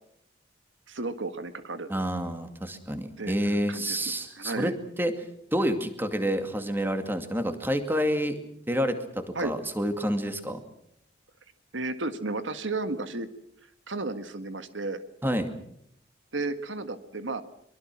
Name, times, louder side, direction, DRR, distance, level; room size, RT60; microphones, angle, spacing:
voice 1, 0.9-1.9 3.2-4.0 4.4-4.7 9.3-9.5 11.7-13.3 13.9-15.0 16.3-17.4, right 3 dB, 85° right, 10 dB, 1.7 m, -33 dB
voice 2, 1.9-5.1 5.5-8.4 8.7-10.6 15.2-15.5, equal, 10° right, 7 dB, 2.3 m, -28 dB
23.5 x 23.5 x 6.2 m, 0.75 s
head